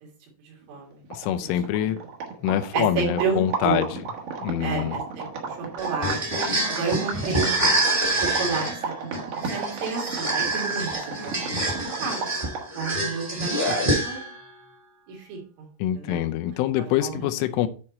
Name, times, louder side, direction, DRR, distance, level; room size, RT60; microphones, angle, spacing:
voice 1, 0.5-1.0 2.7-3.8 4.6-6.4 6.7-7.6 8.2-9.1 9.5-10.9 11.2-12.2 12.8-14.3 15.1-15.7 16.0-16.2 17.0-17.3, right 5 dB, 80° right, -1 dB, 5.2 m, -31 dB
sound 1, 0.8-0.9 1.0-12.8, right 5 dB, 60° right, 2.5 m, -33 dB
voice 2, 1.1-2.0 2.4-3.9 4.4-5.0 13.7-13.8 15.8-17.7, left 12 dB, 85° left, 9 dB, 3.2 m, -25 dB
sound 2, 5.8-14.4, right 1 dB, 15° right, 1.4 m, -26 dB
11.0 x 4.6 x 4.2 m, 0.39 s
omnidirectional pair, 5.6 m